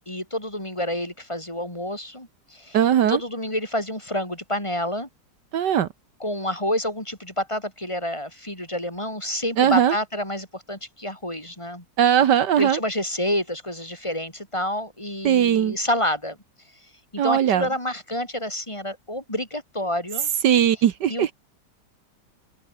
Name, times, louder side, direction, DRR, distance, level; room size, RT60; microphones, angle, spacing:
voice 1, 0.0-2.8 3.1-5.1 6.2-12.2 12.6-16.4 17.1-20.3 21.1-21.3, left 1 dB, 15° left, 4.5 m, -28 dB
voice 2, 2.7-3.2 5.5-5.9 9.6-9.9 12.0-12.8 15.2-15.7 17.2-17.6 20.4-21.3, right 9 dB, 75° right, 1.7 m, -19 dB
open air
omnidirectional pair, 1.9 m